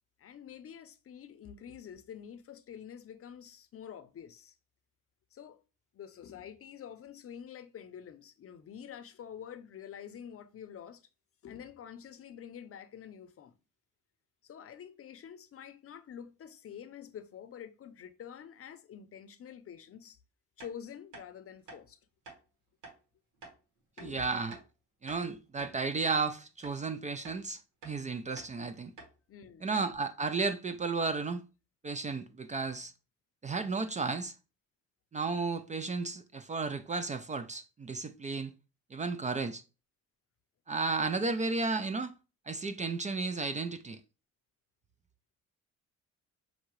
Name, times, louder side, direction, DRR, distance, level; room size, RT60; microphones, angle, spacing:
voice 1, 0.2-4.6 5.3-5.6 5.9-11.0 11.4-13.5 14.4-20.2 20.6-22.0 24.0-24.3 29.3-29.7, left 8 dB, 50° left, 0.6 m, -47 dB
sound 1, 20.6-20.7 21.1-21.3 21.7-21.8 22.3-22.4 22.8-23.0 23.4-23.6 24.0-24.1 24.5-24.7 25.1-25.8 26.1-26.3 26.6-26.8 27.2-27.4 27.8-28.0 28.4-28.5 29.0-29.1 29.4-29.5 29.8-30.0, right 3 dB, 85° right, 1.5 m, -50 dB
voice 2, 24.0-24.6 25.0-28.9 29.6-31.4 31.8-32.9 33.4-34.3 35.1-38.5 38.9-39.6 40.7-42.1 42.5-44.0, right 4 dB, 25° right, 0.4 m, -33 dB
5.8 x 2.7 x 3.0 m
cardioid pair, 90°, 30 cm